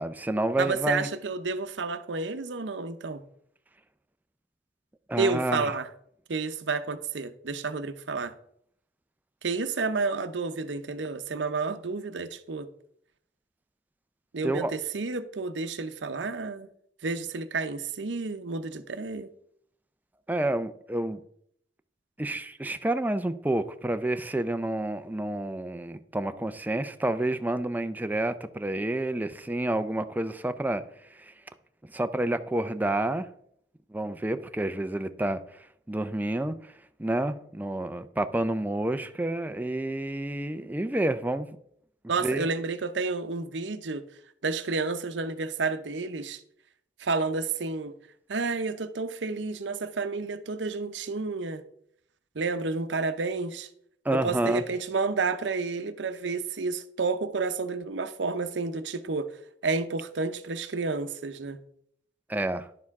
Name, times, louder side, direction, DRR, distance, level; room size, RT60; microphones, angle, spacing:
voice 1, 0.0-1.1 5.1-5.7 14.4-14.7 20.3-21.2 22.2-30.8 31.1-31.3 31.8-33.3 33.9-36.7 37.0-41.5 42.2-42.5 54.0-54.6 62.3-62.7, right 1 dB, 10° right, 0.4 m, -29 dB
voice 2, 0.6-3.2 5.2-5.9 6.3-8.3 9.4-12.7 14.3-16.7 17.0-19.3 42.1-44.0 44.4-46.4 47.0-47.9 48.3-51.6 52.3-53.7 54.1-59.3 59.6-61.6, right 4 dB, 80° right, 0.7 m, -30 dB
11.0 x 6.7 x 3.6 m
head